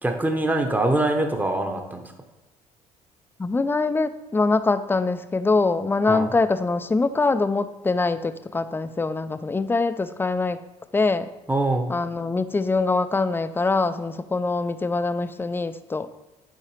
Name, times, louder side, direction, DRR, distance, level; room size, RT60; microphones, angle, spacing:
voice 1, 0.0-2.0 6.1-6.3 11.5-11.9, right 2 dB, 10° right, 4 dB, 0.9 m, -23 dB
voice 2, 3.4-10.6 10.9-11.3 11.9-16.1, left 3 dB, 15° left, 12 dB, 0.4 m, -23 dB
7.5 x 4.7 x 3.2 m, 1.0 s
hypercardioid pair, 60°, 16 cm